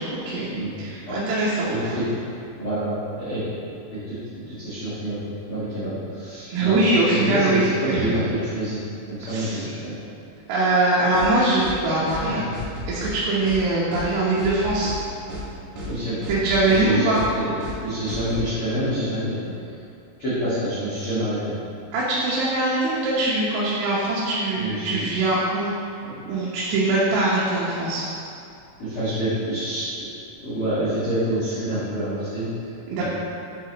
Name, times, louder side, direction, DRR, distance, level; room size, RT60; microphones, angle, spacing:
voice 1, 0.0-0.5 0.8-1.7 6.5-8.1 9.3-9.7 10.5-12.5 12.9-14.9 16.3-17.2 21.9-25.7 26.3-28.1 32.9-33.0, right 2 dB, 90° right, -8 dB, 3.5 m, -22 dB
voice 2, 1.6-2.0 2.6-3.4 3.9-4.2 4.4-6.7 7.1-8.8 9.1-10.0 12.2-12.5 15.8-16.2 16.6-17.5 17.8-19.8 20.2-21.5 24.6-25.0 26.0-26.1 28.8-30.1 30.4-33.0, right 1 dB, 70° left, -13 dB, 1.3 m, -27 dB
sound 1, 11.1-11.3 11.6-11.8 12.1-12.2 12.5-13.1 13.4-13.6 13.9-14.1 14.4-15.0 15.3-15.5 15.8-15.9 16.2-16.8 17.1-17.3 17.6-17.8 18.1-18.4, left 1 dB, 60° right, 2.1 m, -33 dB
8.5 x 5.8 x 3.0 m, 2.6 s
omnidirectional pair, 5.2 m